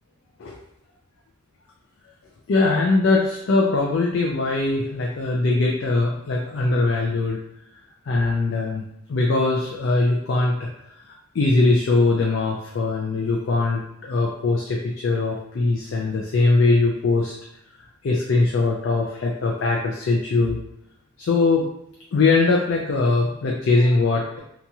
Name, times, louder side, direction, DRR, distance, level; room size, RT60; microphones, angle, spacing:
voice 1, 2.5-7.4 8.1-8.8 9.1-10.7 11.3-17.3 18.0-20.6 21.2-21.7 22.1-24.4, left 3 dB, 60° left, -1 dB, 0.4 m, -21 dB
2.9 x 2.3 x 2.7 m, 0.78 s
head